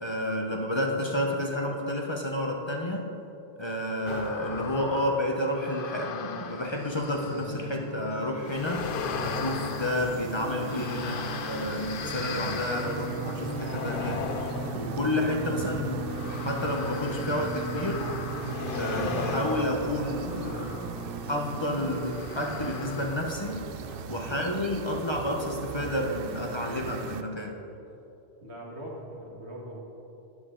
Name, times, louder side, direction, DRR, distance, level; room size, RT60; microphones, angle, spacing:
voice 1, 0.0-3.1 3.6-8.9 9.2-14.2 14.7-18.1 18.8-20.9 21.3-23.6 24.1-27.6, left 1 dB, 30° left, 1 dB, 0.9 m, -30 dB
sound 1, 4.1-7.7 8.4-21.2 22.0-23.6 23.9-24.0, left 6 dB, 60° left, 0.7 m, -38 dB
sound 2, 7.1-21.9, right 1 dB, 5° left, 2.8 m, -37 dB
sound 3, 9.2-27.2, right 8 dB, 65° right, 0.7 m, -40 dB
voice 2, 23.8-24.1 28.4-29.8, right 1 dB, 85° right, -3 dB, 2.2 m, -41 dB
12.5 x 10.0 x 3.8 m, 2.9 s
omnidirectional pair, 1.1 m